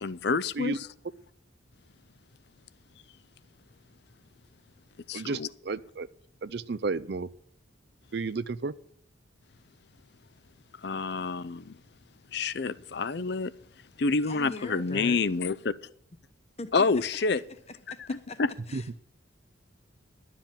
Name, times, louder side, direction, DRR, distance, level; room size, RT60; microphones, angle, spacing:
voice 1, 0.0-0.9 5.1-5.5 10.8-11.8 12.3-13.5 14.0-15.7 16.7-17.4 18.1-18.5, left 4 dB, 55° left, 0.5 m, -28 dB
voice 2, 5.1-6.1 6.4-7.3 8.1-8.7 18.7-18.8, right 4 dB, 55° right, 0.5 m, -32 dB
voice 3, 14.2-15.2 16.6-17.4 17.9-18.4 18.7-19.0, left 2 dB, 30° left, 1.0 m, -41 dB
11.5 x 7.6 x 8.8 m
head